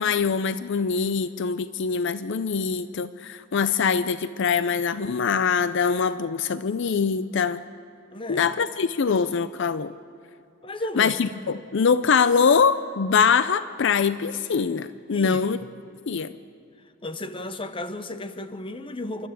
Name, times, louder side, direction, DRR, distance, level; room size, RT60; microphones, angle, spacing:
voice 1, 0.0-7.6 8.3-9.9 11.0-15.6 16.1-16.3, left 6 dB, 60° left, 14 dB, 0.5 m, -23 dB
voice 2, 8.1-8.5 10.6-11.2 15.1-15.4 17.0-19.3, left 1 dB, 25° left, 11 dB, 0.8 m, -34 dB
27.5 x 12.5 x 8.2 m, 2.4 s
head